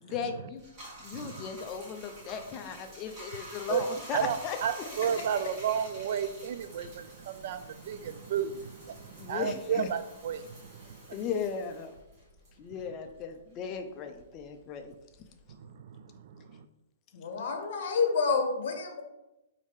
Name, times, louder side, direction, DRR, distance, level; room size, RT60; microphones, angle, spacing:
voice 1, 0.0-0.6 1.0-4.6 9.2-9.9 11.1-11.9 12.6-14.9, left 6 dB, 25° left, 6 dB, 0.4 m, -36 dB
Bathtub (filling or washing), 0.6-13.4 13.7-15.5, right 1 dB, 25° right, 1.4 m, -49 dB
voice 2, 1.1-1.5 3.7-3.8 4.1-4.4 4.6-11.0 15.6-16.6, right 8 dB, 50° right, 11 dB, 0.3 m, -33 dB
voice 3, 17.1-19.0, left 5 dB, 55° left, 4 dB, 0.9 m, -28 dB
4.8 x 2.7 x 3.5 m, 0.92 s
hypercardioid pair, 160°, 0 cm